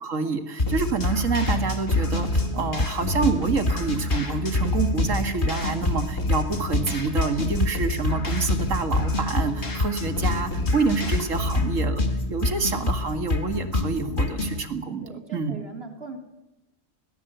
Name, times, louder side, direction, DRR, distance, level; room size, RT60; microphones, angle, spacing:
voice 1, 0.0-12.0 12.3-15.1 15.3-15.6, right 4 dB, 75° right, 8 dB, 2.2 m, -27 dB
sound 1, 0.6-14.6, left 2 dB, 40° left, 2.0 m, -27 dB
sound 2, 0.7-11.7, left 2 dB, 75° left, 3.1 m, -32 dB
voice 2, 15.0-16.2, right 4 dB, 50° right, 3 dB, 3.0 m, -42 dB
21.0 x 18.5 x 8.0 m, 0.94 s
omnidirectional pair, 1.3 m